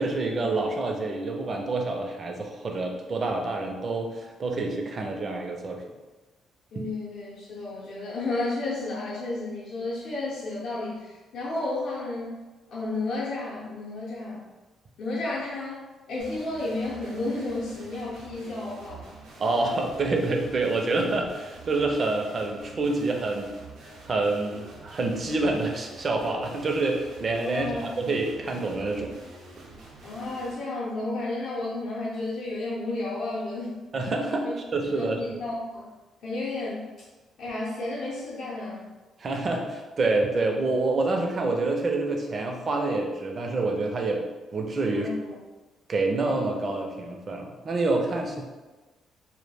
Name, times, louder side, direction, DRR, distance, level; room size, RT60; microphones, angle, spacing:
voice 1, 0.0-5.8 19.4-23.5 24.0-29.1 33.9-35.4 39.2-44.2 44.5-45.1 45.9-48.4, right 2 dB, 45° right, 2 dB, 0.4 m, -27 dB
voice 2, 6.7-12.3 12.7-14.4 15.0-15.8 16.1-19.1 27.4-28.1 30.0-33.8 34.4-34.5 34.9-35.9 36.2-36.9 37.4-38.9 44.9-45.3, left 2 dB, 75° left, -7 dB, 0.6 m, -32 dB
sound 1, 16.2-30.5, right 3 dB, 90° right, 0.6 m, -47 dB
2.2 x 2.0 x 3.2 m, 1.2 s
cardioid pair, 90°, 0 cm